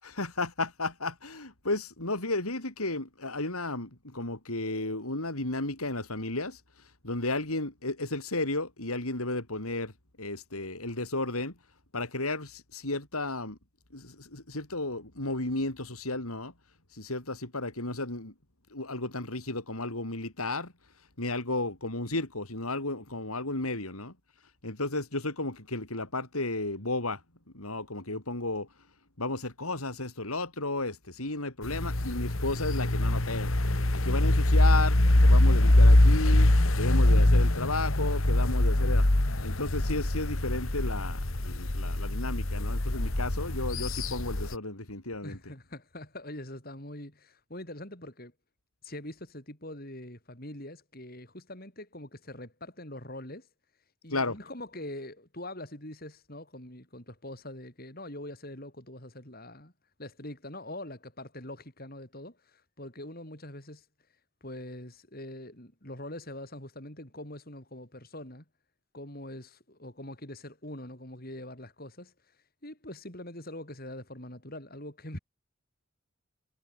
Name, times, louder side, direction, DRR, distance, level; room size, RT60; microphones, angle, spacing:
voice 1, 0.0-6.6 7.0-9.9 10.2-11.6 11.9-13.6 13.9-16.5 16.9-18.3 18.7-20.7 21.2-24.2 24.6-27.2 27.5-28.7 29.2-33.5 33.9-39.1 39.4-45.4 54.1-54.4, left 2 dB, 90° left, 6.0 m, -33 dB
sound 1, 31.6-44.5, left 1 dB, 70° left, 2.1 m, -23 dB
voice 2, 45.2-48.3 48.8-53.5 54.0-59.7 60.0-63.8 64.4-68.4 68.9-72.1 72.6-75.2, left 1 dB, 45° left, 5.9 m, -43 dB
head